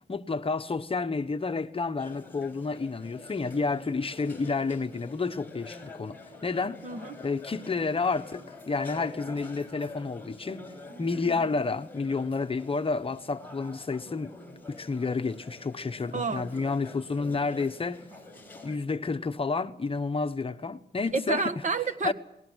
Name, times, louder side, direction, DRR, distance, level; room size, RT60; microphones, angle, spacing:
voice 1, 0.1-6.8 7.2-10.7 11.0-14.3 14.7-18.1 18.6-21.4 22.0-22.1, left 4 dB, 30° left, 1.1 m, -30 dB
sound 1, 2.0-18.8, left 2 dB, 10° left, 6.6 m, -46 dB
voice 2, 6.8-7.2 16.1-16.5 21.1-22.1, right 4 dB, 45° right, 1.7 m, -30 dB
29.5 x 20.5 x 6.4 m
cardioid pair, 100°, 18 cm